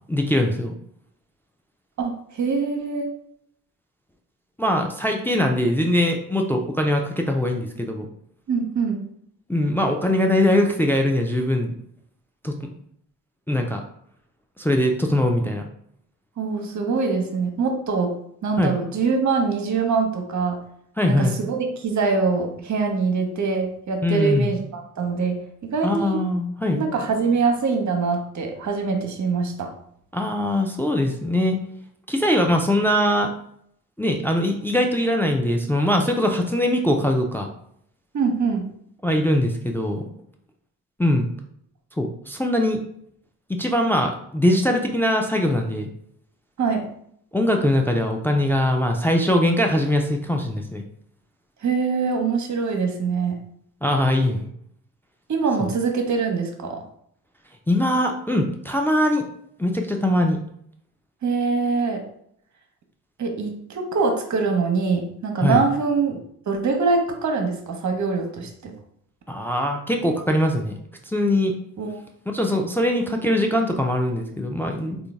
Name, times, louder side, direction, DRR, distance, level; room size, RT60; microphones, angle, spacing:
voice 1, 0.1-0.7 4.6-8.1 9.5-11.7 12.4-12.7 13.5-13.8 14.6-15.7 18.6-18.7 21.0-21.4 24.0-24.6 25.8-26.8 30.1-31.6 32.1-33.3 34.0-37.5 39.0-40.0 41.0-41.3 42.0-42.8 43.5-45.9 47.3-50.8 53.8-54.5 55.6-55.7 57.7-59.2 59.6-60.4 65.4-65.6 69.3-70.7 71.1-71.5 72.3-75.0, left 1 dB, 5° left, 3 dB, 0.3 m, -22 dB
voice 2, 2.0-3.1 8.5-9.0 16.4-20.6 21.1-26.2 26.8-29.7 38.1-38.7 46.6-46.9 51.6-53.4 55.3-56.8 61.2-62.1 63.2-66.2 66.5-68.7 71.8-72.0, right 4 dB, 35° right, 4 dB, 0.8 m, -24 dB
3.8 x 2.3 x 3.4 m, 0.69 s
figure-of-eight pair, 40°, 48 cm